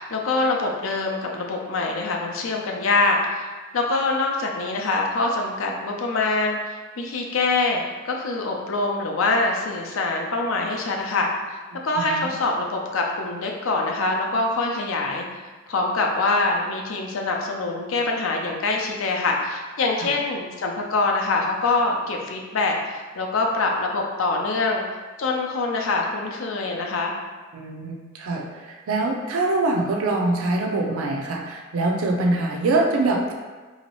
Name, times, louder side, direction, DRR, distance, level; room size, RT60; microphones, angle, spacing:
voice 1, 0.0-11.6 11.8-15.3 15.7-24.8 25.2-27.1, left 3 dB, 70° left, 0 dB, 0.5 m, -24 dB
voice 2, 12.0-12.3 20.0-20.1 27.5-33.3, right 2 dB, 80° right, 1 dB, 0.4 m, -24 dB
3.0 x 2.8 x 2.9 m, 1.3 s
head